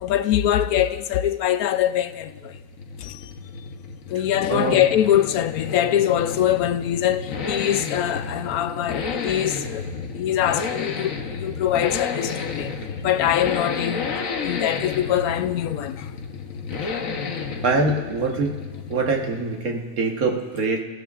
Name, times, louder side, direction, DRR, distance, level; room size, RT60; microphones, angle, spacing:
voice 1, 0.0-2.5 3.0-3.2 4.1-9.9 10.2-12.7 13.0-16.1, left 11 dB, 85° left, 1.1 m, -23 dB
sound 1, 1.8-19.8, left 5 dB, 65° left, 1.4 m, -31 dB
voice 2, 17.6-18.6 18.9-20.8, right 3 dB, 80° right, 1.8 m, -24 dB
26.0 x 15.0 x 2.5 m
omnidirectional pair, 1.5 m